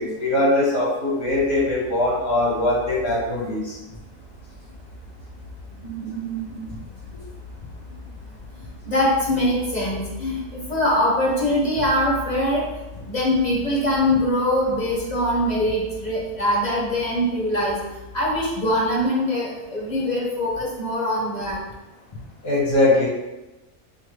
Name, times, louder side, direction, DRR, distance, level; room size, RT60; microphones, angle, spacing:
voice 1, 0.0-3.8 22.4-23.1, left 2 dB, 75° left, -5 dB, 1.9 m, -21 dB
sound 1, 1.2-19.0, left 4 dB, 55° right, 0.5 m, -42 dB
voice 2, 5.8-6.7 8.8-12.6 13.1-17.8 18.1-21.6, left 1 dB, 35° left, -3 dB, 0.8 m, -23 dB
4.2 x 3.8 x 3.2 m, 1.0 s
omnidirectional pair, 1.5 m